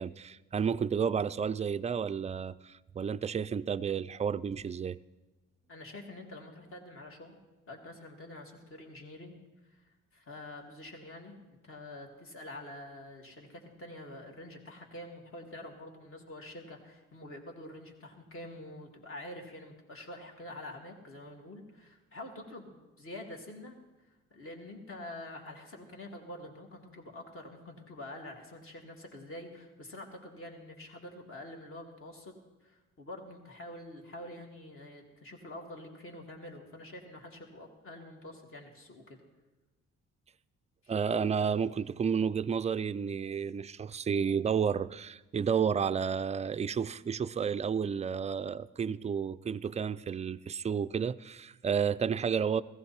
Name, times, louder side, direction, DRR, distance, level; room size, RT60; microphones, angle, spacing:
voice 1, 0.0-5.0 40.9-52.6, right 7 dB, 25° right, 0.4 m, -31 dB
voice 2, 5.7-7.4 7.7-9.4 9.7-9.8 10.1-11.4 11.6-23.7 24.3-32.3 32.6-39.2 40.8-40.9, left 1 dB, 45° left, 2.6 m, -46 dB
16.0 x 15.0 x 4.4 m
cardioid pair, 90°, 30 cm